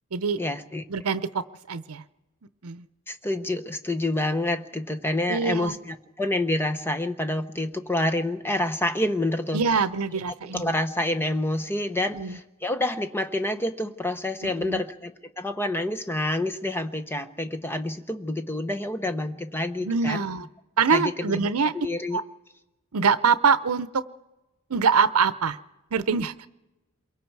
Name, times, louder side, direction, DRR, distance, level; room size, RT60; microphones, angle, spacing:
voice 1, 0.4-0.8 3.1-9.6 10.5-20.2 20.9-21.5 21.7-22.2, left 1 dB, 10° left, 9 dB, 0.9 m, -28 dB
voice 2, 0.9-2.0 2.6-2.9 5.3-5.8 9.5-10.7 12.1-12.4 14.6-14.8 19.8-20.5 20.8-21.7 22.1-22.2 22.9-24.0 24.7-25.6 25.9-26.3, right 5 dB, 85° right, 15 dB, 0.7 m, -24 dB
27.0 x 23.0 x 4.7 m, 1.0 s
head